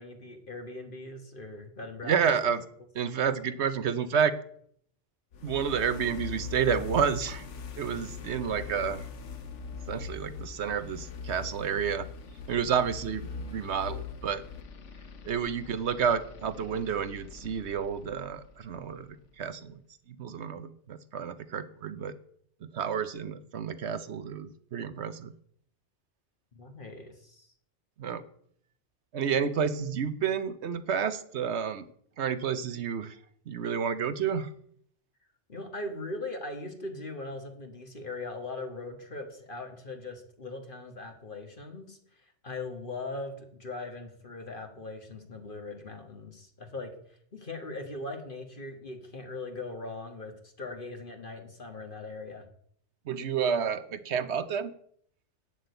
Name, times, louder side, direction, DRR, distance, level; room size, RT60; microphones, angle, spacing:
voice 1, 0.0-2.1 26.5-27.5 35.5-46.9 47.3-52.4, left 2 dB, 45° left, 5 dB, 1.6 m, -40 dB
voice 2, 2.0-2.6 2.9-4.4 5.4-7.5 7.8-9.1 9.9-12.1 12.5-14.4 15.2-19.1 19.4-19.8 20.1-22.1 22.6-25.3 28.0-28.2 29.1-31.9 32.2-33.2 33.5-34.5 53.1-54.7, right 7 dB, 70° right, 13 dB, 1.1 m, -30 dB
sound 1, 5.3-19.2, left 5 dB, 80° left, 1.3 m, -42 dB
8.7 x 7.6 x 7.9 m, 0.64 s
omnidirectional pair, 1.2 m